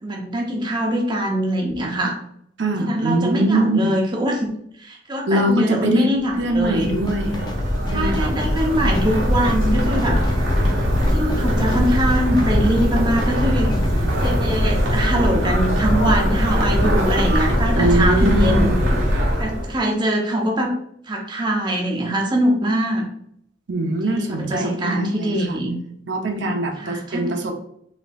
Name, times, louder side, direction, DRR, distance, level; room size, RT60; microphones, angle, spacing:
voice 1, 0.0-2.2 2.8-4.5 4.8-6.9 7.9-10.2 11.1-13.7 14.2-18.8 19.4-20.7 21.1-23.1 24.0-25.8 26.8-27.4, right 1 dB, 25° right, 0 dB, 0.6 m, -23 dB
voice 2, 2.6-3.9 5.3-6.1 6.4-7.3 7.9-9.0 17.7-18.7 23.7-25.6 26.1-27.5, right 1 dB, 65° right, 3 dB, 0.6 m, -22 dB
sound 1, 6.3-19.8, equal, 90° right, 1.1 m, -20 dB
sound 2, 6.8-14.7, left 1 dB, 20° left, 0.3 m, -33 dB
4.1 x 3.6 x 2.3 m, 0.71 s
head